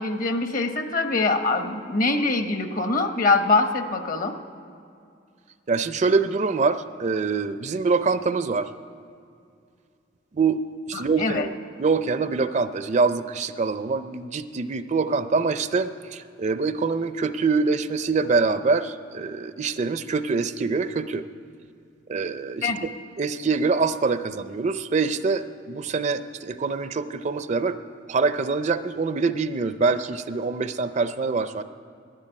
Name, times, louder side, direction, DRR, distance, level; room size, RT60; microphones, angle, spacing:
voice 1, 0.0-4.3 10.9-11.5 22.6-22.9, left 3 dB, 45° left, 7 dB, 1.0 m, -23 dB
voice 2, 5.7-8.7 10.3-10.6 10.9-11.5 11.8-21.2 22.1-22.9 23.2-27.8 28.1-31.6, right 4 dB, 40° right, 12 dB, 0.4 m, -24 dB
11.5 x 9.9 x 9.9 m, 2.4 s
head